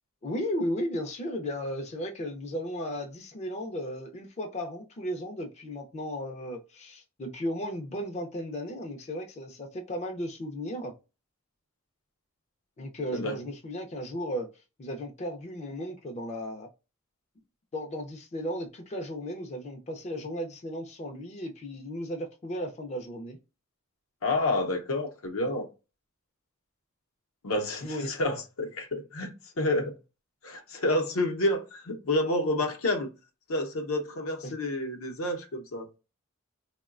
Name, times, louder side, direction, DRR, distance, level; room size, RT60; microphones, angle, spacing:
voice 1, 0.2-10.9 12.8-14.5 14.8-16.7 17.7-23.4 27.8-28.1 34.4-34.5, equal, 30° left, 0.4 m, -35 dB
voice 2, 24.2-25.7 27.4-29.9 30.4-33.1 33.5-35.9, left 1 dB, 75° left, 0.6 m, -29 dB
3.7 x 2.1 x 2.4 m
head